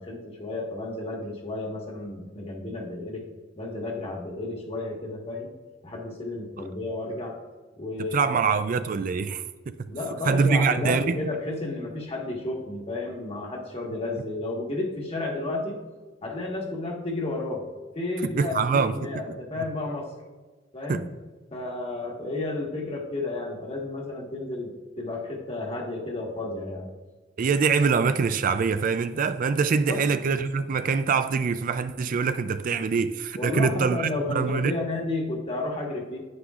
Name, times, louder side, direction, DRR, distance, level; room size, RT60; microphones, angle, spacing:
voice 1, 0.0-3.2 3.5-5.5 5.8-7.3 7.8-8.4 9.9-15.8 16.2-17.6 17.9-20.1 20.7-21.0 21.5-24.7 25.0-26.9 29.8-30.0 33.4-36.2, left 2 dB, 30° left, 1.5 m, -32 dB
voice 2, 8.0-9.7 10.3-11.2 18.2-19.1 20.9-21.0 27.4-34.7, right 5 dB, 45° right, 0.4 m, -24 dB
9.7 x 9.7 x 2.4 m
head